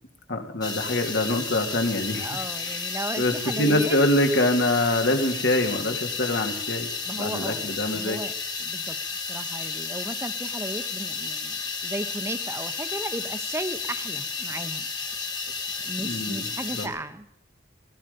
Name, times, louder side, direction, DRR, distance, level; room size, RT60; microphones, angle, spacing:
voice 1, 0.3-2.3 2.6-2.8 3.2-6.9 7.2-8.2 16.0-16.9, left 1 dB, 75° left, 4 dB, 2.5 m, -25 dB
sound 1, 0.6-16.9, left 4 dB, 20° left, 1.6 m, -32 dB
voice 2, 2.2-4.0 7.0-8.3 8.6-9.0 9.3-14.9 15.8-17.3, right 1 dB, 15° right, 11 dB, 1.0 m, -35 dB
17.0 x 16.0 x 5.2 m, 0.73 s
head